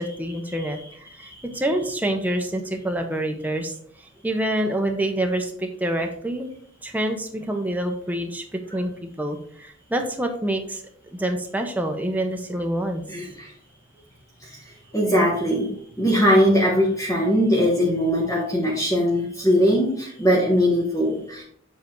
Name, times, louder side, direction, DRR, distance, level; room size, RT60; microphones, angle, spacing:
voice 1, 0.0-3.7 4.2-6.5 6.8-8.9 9.2-10.8 11.1-13.0, right 1 dB, 10° right, 4 dB, 0.7 m, -27 dB
voice 2, 13.1-13.5 14.9-15.7 16.0-21.4, equal, 15° left, -3 dB, 1.0 m, -20 dB
7.3 x 3.4 x 4.5 m, 0.62 s
head